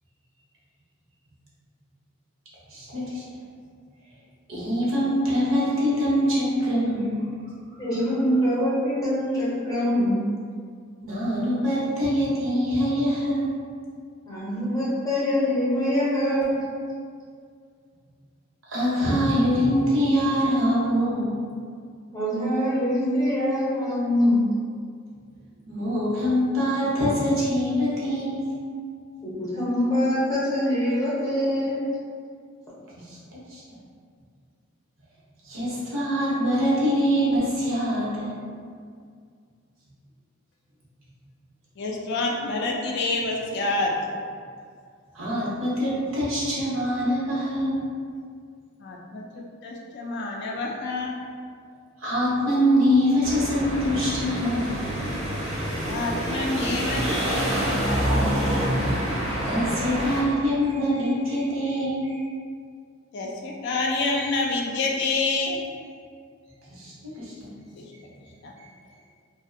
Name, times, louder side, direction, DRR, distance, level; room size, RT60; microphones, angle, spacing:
voice 1, 2.7-3.2 4.5-7.3 11.0-13.5 18.7-21.4 25.7-28.5 33.1-33.2 33.5-33.6 35.4-38.3 45.1-47.8 52.0-54.7 59.1-59.2 59.4-62.1 66.8-67.5, equal, 70° right, -7 dB, 0.8 m, -24 dB
voice 2, 7.8-10.2 14.3-16.5 22.1-24.4 29.2-31.8, equal, 15° left, -9 dB, 0.6 m, -24 dB
voice 3, 41.8-44.0 48.8-51.1 55.8-58.3 59.4-59.7 63.1-65.6 67.8-67.9 68.4-68.5, left 3 dB, 55° left, -1 dB, 0.3 m, -28 dB
sound 1, 53.2-60.2, equal, 30° right, 0.5 m, -27 dB
2.5 x 2.0 x 2.5 m, 2.1 s
head